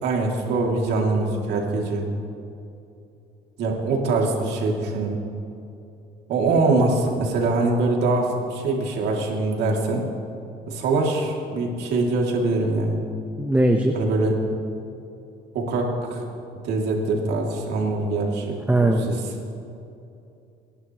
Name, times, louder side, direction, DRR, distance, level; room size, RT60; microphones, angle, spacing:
voice 1, 0.0-2.0 3.6-5.2 6.3-10.1 10.7-13.0 13.9-14.4 15.5-16.2 16.6-19.2, right 3 dB, 80° right, -1 dB, 2.8 m, -23 dB
voice 2, 13.4-14.0 18.7-19.1, right 1 dB, 10° right, 2 dB, 1.0 m, -19 dB
28.5 x 11.5 x 3.1 m, 2.7 s
cardioid pair, 110°, 17 cm